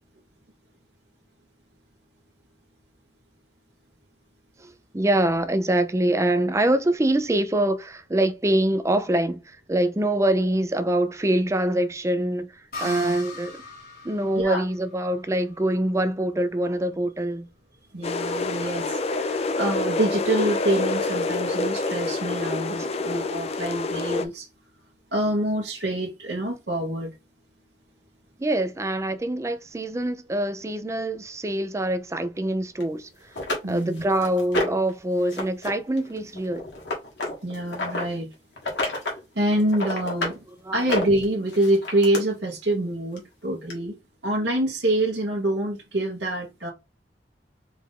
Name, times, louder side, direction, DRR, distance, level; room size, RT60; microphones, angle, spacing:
voice 1, 4.6-13.6 14.0-17.5 28.4-33.1 33.6-36.7 40.6-40.8, right 1 dB, 15° right, 0.5 m, -24 dB
sound 1, 12.7-16.3, left 3 dB, 60° left, 2.5 m, -40 dB
voice 2, 12.8-13.1 14.3-14.6 17.9-24.5 25.1-27.1 33.6-34.0 37.4-38.3 39.0-40.4 40.7-43.9 44.2-46.7, right 1 dB, 75° right, 1.1 m, -26 dB
sound 2, 18.0-24.2, left 3 dB, 35° left, 0.5 m, -27 dB
sound 3, 32.8-32.9 33.4-34.9 35.3-35.7 36.0-38.1 38.6-39.2 39.5-40.4 40.8-42.2 43.2-43.3 43.7-43.8, left 2 dB, 80° left, 1.7 m, -29 dB
4.6 x 2.5 x 3.7 m
head